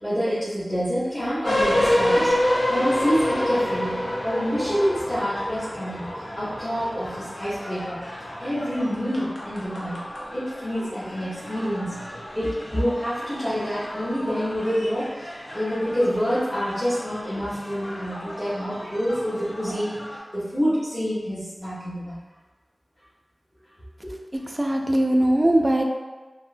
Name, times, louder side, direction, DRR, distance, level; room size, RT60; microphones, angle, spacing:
voice 1, 0.0-2.4 2.7-10.0 10.3-20.0 20.3-22.2 24.0-24.1, equal, 30° left, -15 dB, 1.2 m, -27 dB
sound 1, 1.4-20.2, left 1 dB, 75° left, 0.7 m, -29 dB
voice 2, 24.5-25.8, right 1 dB, 30° right, 1 dB, 0.3 m, -20 dB
3.5 x 2.0 x 2.6 m, 1.2 s
wide cardioid pair, 65°, 0 cm